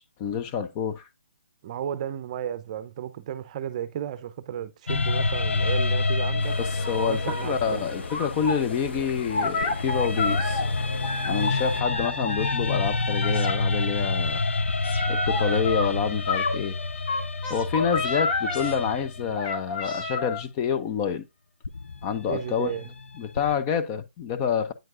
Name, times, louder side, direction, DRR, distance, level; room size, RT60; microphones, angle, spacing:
voice 1, 0.2-1.1 6.6-10.6 11.3-14.4 15.1-16.8 17.5-21.2 22.0-22.7 23.2-24.7, left 7 dB, 25° left, 0.6 m, -28 dB
voice 2, 1.6-6.6 7.1-7.8 22.3-22.9, right 10 dB, 35° right, 0.6 m, -33 dB
sound 1, 4.9-9.1 9.6-19.6 21.6-23.5, left 3 dB, 80° left, 0.6 m, -28 dB
sound 2, 6.4-11.8, left 3 dB, 65° left, 1.2 m, -38 dB
sound 3, 6.8-7.5 8.1-8.6 9.3-10.7 11.0-12.5 13.2-13.6 14.8-15.9 16.3-16.6 17.1-18.7 19.3-20.4, left 3 dB, 40° left, 1.9 m, -29 dB
9.0 x 4.5 x 2.6 m
hypercardioid pair, 145°, 6 cm